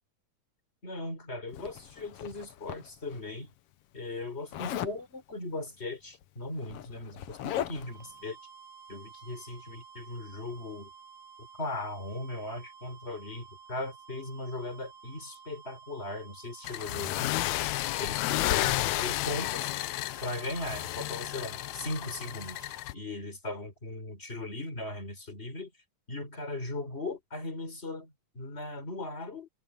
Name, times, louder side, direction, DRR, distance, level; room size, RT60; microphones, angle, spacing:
voice 1, 0.8-3.5 3.9-8.4 8.9-10.9 11.4-17.5 18.0-19.7 20.2-25.7 26.1-29.5, left 2 dB, 20° left, 4.3 m, -38 dB
Zipper (clothing), 1.5-3.2 4.5-5.0 6.1-6.2 6.5-8.0, left 11 dB, 65° left, 1.5 m, -38 dB
sound 1, 7.7-23.0, right 7 dB, 20° right, 6.1 m, -52 dB
sound 2, 16.6-22.9, left 18 dB, 85° left, 1.5 m, -32 dB
omnidirectional pair, 3.7 m